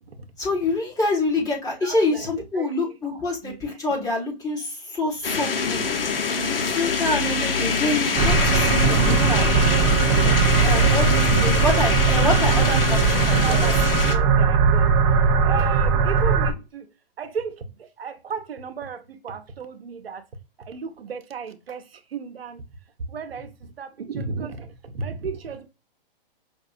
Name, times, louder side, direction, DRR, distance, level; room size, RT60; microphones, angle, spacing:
voice 1, 0.4-5.9 6.4-9.5 10.6-13.6, left 2 dB, 10° left, 1.5 m, -26 dB
voice 2, 1.8-2.7 3.1-3.8 8.2-8.3 10.2-11.1 13.3-13.8 14.1-15.0 15.4-16.9 17.2-20.2 20.6-22.6 23.1-25.7, right 5 dB, 90° right, 0.8 m, -35 dB
sound 1, 5.2-14.1, left 5 dB, 70° left, 1.2 m, -25 dB
sound 2, 8.2-16.5, right 5 dB, 25° right, 0.4 m, -19 dB
5.2 x 2.6 x 2.5 m
hypercardioid pair, 140°, 29 cm